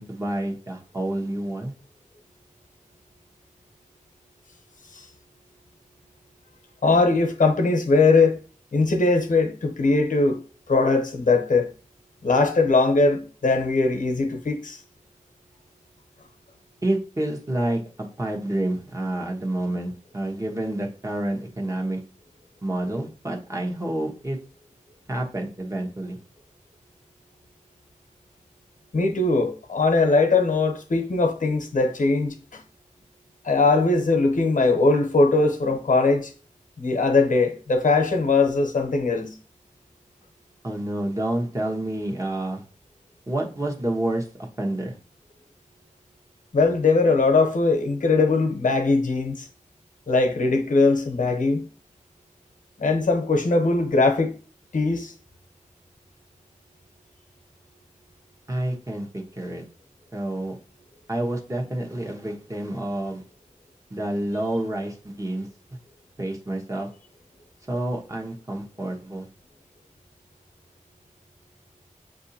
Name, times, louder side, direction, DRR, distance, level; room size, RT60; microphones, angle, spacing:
voice 1, 0.0-1.7 16.8-22.0 22.6-24.4 25.1-26.2 40.6-42.6 43.3-45.0 58.5-59.6 60.1-60.6 61.1-63.2 63.9-65.5 66.2-66.9 67.7-69.3, right 1 dB, 25° right, 1.0 m, -28 dB
voice 2, 6.8-8.4 8.7-10.4 10.7-11.7 12.2-14.8 28.9-32.6 33.4-36.3 36.8-39.3 46.5-49.5 50.1-51.6 52.8-54.3 54.7-55.1, left 3 dB, 80° left, 0.8 m, -20 dB
6.6 x 2.6 x 2.7 m
wide cardioid pair, 80°, 13 cm